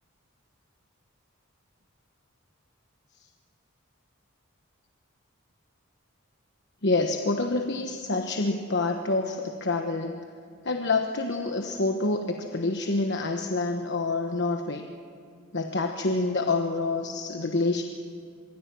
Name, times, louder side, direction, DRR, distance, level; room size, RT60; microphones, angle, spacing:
voice 1, 6.8-10.2 10.6-14.9 15.5-17.8, left 3 dB, 55° left, 4 dB, 1.2 m, -27 dB
25.5 x 22.5 x 6.2 m, 2.4 s
head